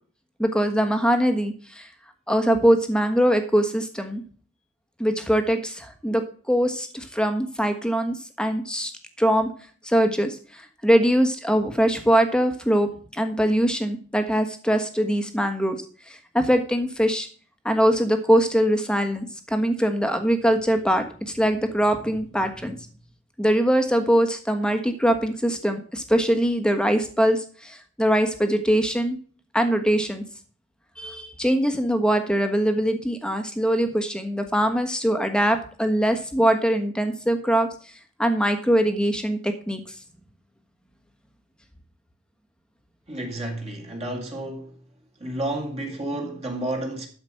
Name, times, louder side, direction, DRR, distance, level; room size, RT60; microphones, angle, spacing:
voice 1, 0.4-1.9 2.3-4.2 5.0-8.9 9.2-9.5 9.8-15.8 16.1-17.3 17.6-22.9 23.4-29.2 29.5-30.2 31.0-37.7 38.2-40.0, equal, 5° left, 1.3 m, -22 dB
voice 2, 43.1-44.8 45.2-47.1, right 1 dB, 30° right, 2.1 m, -31 dB
12.5 x 5.1 x 6.6 m
head